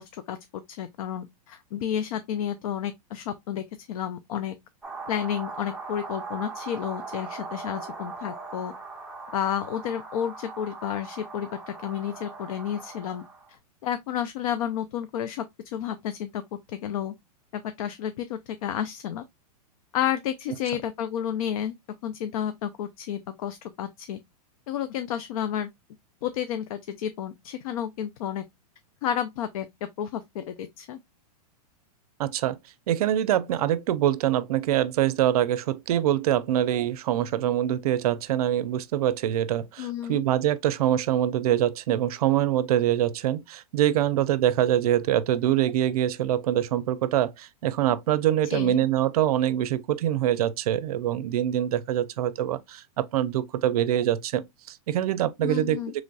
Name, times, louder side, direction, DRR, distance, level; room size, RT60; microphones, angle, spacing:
voice 1, 0.0-4.6 5.1-8.7 9.3-13.2 13.5-16.4 16.7-17.1 17.5-19.2 19.9-21.7 22.0-24.2 24.7-25.7 26.2-28.4 29.0-31.0 39.8-40.2 48.5-48.9 55.4-55.9, left 10 dB, 60° left, 0.4 m, -31 dB
sound 1, 4.8-13.5, right 4 dB, 5° right, 0.6 m, -40 dB
voice 2, 32.2-32.6 32.9-56.0, right 11 dB, 70° right, 0.5 m, -24 dB
3.9 x 3.1 x 2.2 m
hypercardioid pair, 145°, 20 cm